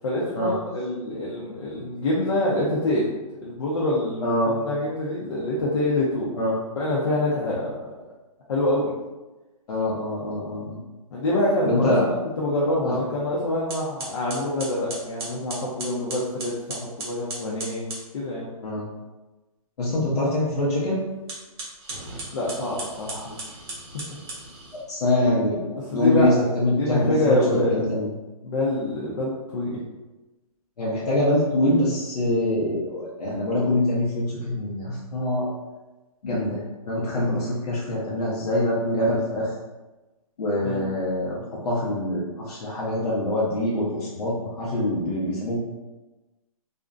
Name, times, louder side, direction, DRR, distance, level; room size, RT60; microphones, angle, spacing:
voice 1, 0.0-3.1 3.4-6.4 6.7-7.9 8.5-8.9 11.1-17.9 18.1-18.5 22.3-23.4 25.8-26.5 26.8-28.0 28.4-29.8 40.6-40.8, left 1 dB, 55° left, -6 dB, 0.5 m, -26 dB
voice 2, 4.2-4.5 6.4-6.5 9.7-10.8 11.6-12.0 12.8-13.0 18.6-18.8 19.8-21.0 24.9-28.1 30.8-35.5 36.2-39.5 40.4-41.4 41.6-45.6, left 1 dB, 90° left, -6 dB, 0.7 m, -24 dB
sound 1, 13.2-13.3 13.7-18.1 21.2-24.8, right 2 dB, 40° right, 0.7 m, -37 dB
2.4 x 2.1 x 2.4 m, 1.1 s
hypercardioid pair, 170°, 19 cm